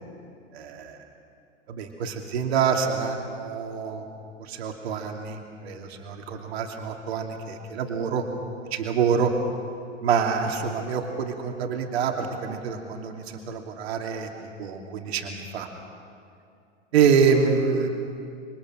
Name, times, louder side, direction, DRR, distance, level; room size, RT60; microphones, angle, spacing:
voice 1, 0.5-1.0 1.7-4.0 4.4-8.2 8.7-9.3 10.0-14.3 14.6-15.7 16.9-17.9, right 6 dB, 55° right, 3 dB, 2.8 m, -26 dB
27.0 x 23.5 x 6.4 m, 2.4 s
figure-of-eight pair, 95°, 37 cm